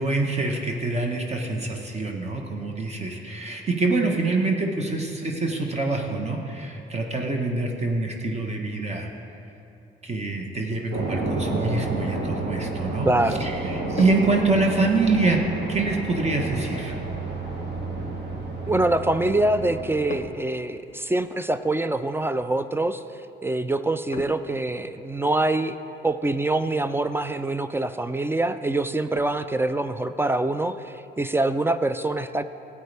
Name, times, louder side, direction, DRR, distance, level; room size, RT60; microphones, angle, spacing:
voice 1, 0.0-9.1 10.0-13.1 13.4-16.9, right 3 dB, 35° right, 1 dB, 1.1 m, -25 dB
sound 1, 10.9-20.3, right 2 dB, 60° right, 1.8 m, -31 dB
voice 2, 13.0-13.5 18.7-23.0 23.4-25.8 26.0-32.4, right 2 dB, 10° right, 11 dB, 0.3 m, -25 dB
sound 2, 14.0-15.1 16.1-16.3 20.1-20.6 20.9-21.0 21.6-21.8 24.1-25.1 26.5-26.6 27.0-27.1 27.6-27.8 28.2-28.3 28.7-29.4, left 5 dB, 40° left, 0.6 m, -39 dB
13.5 x 8.5 x 3.4 m, 2.8 s
cardioid pair, 90°, 20 cm